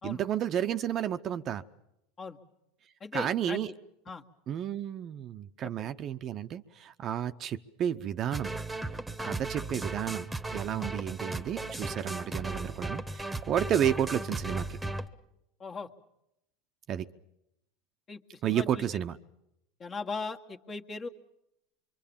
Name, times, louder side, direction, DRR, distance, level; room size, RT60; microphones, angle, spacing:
voice 1, 0.0-1.6 3.1-3.7 4.5-8.5 9.2-14.8 16.9-17.1 18.4-19.2, right 10 dB, 40° right, 0.8 m, -31 dB
voice 2, 3.0-3.6 4.1-4.2 5.6-5.9 9.2-9.3 10.8-10.9 15.6-15.9 18.1-18.9 19.8-21.1, left 4 dB, 30° left, 1.8 m, -39 dB
sound 1, 8.3-15.1, right 2 dB, 10° right, 1.4 m, -36 dB
24.5 x 24.0 x 7.2 m
supercardioid pair, 110°, 0 cm